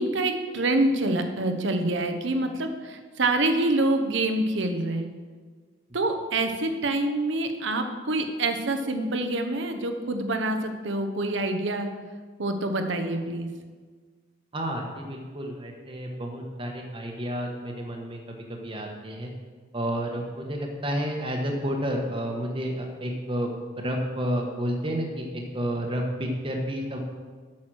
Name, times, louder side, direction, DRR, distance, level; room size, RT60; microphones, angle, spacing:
voice 1, 0.0-5.1 5.9-11.9 12.4-13.5, right 2 dB, 65° right, 6 dB, 0.9 m, -26 dB
voice 2, 14.5-19.3 19.7-23.5 23.8-27.0, equal, 25° right, 1 dB, 1.1 m, -30 dB
8.5 x 6.3 x 6.2 m, 1.5 s
head